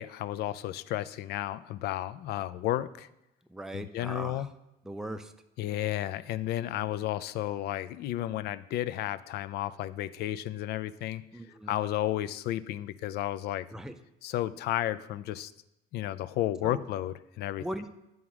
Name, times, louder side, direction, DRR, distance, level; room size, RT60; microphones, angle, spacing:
voice 1, 0.0-3.1 3.7-4.5 5.6-11.2 11.7-13.7 14.2-15.5 15.9-17.7, left 13 dB, 75° left, 15 dB, 0.4 m, -32 dB
voice 2, 3.5-4.5 4.8-5.3 11.3-11.7 13.7-14.0 16.6-16.8 17.6-17.9, right 1 dB, 5° right, 8 dB, 0.4 m, -39 dB
9.3 x 3.6 x 6.0 m, 0.90 s
cardioid pair, 110°, 17 cm